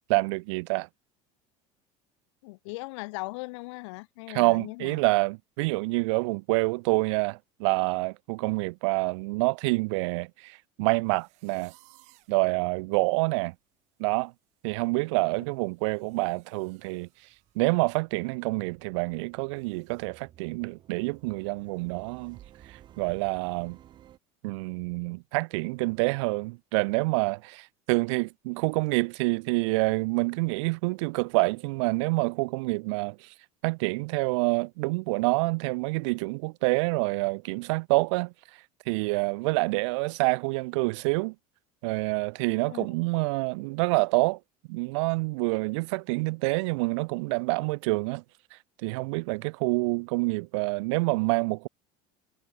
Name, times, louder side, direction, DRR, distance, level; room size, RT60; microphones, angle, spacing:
voice 1, 0.1-0.9 4.3-11.7 12.3-13.5 14.0-14.3 14.6-17.1 17.6-22.4 22.7-23.8 24.4-33.3 33.6-38.3 38.9-41.3 41.8-44.4 44.7-48.2 48.5-51.7, right 27 dB, 85° right, 0.4 m, -27 dB
voice 2, 2.4-5.0 42.7-42.9, left 25 dB, 85° left, 0.7 m, -38 dB
sound 1, 11.1-12.4 13.0-13.1 13.5-13.7 14.0-17.7 18.0-18.2 18.6-18.7 19.5-20.1, right 23 dB, 50° right, 4.3 m, -62 dB
sound 2, 17.2-24.2, right 12 dB, 30° right, 2.1 m, -55 dB
cardioid pair, 170°, 15 cm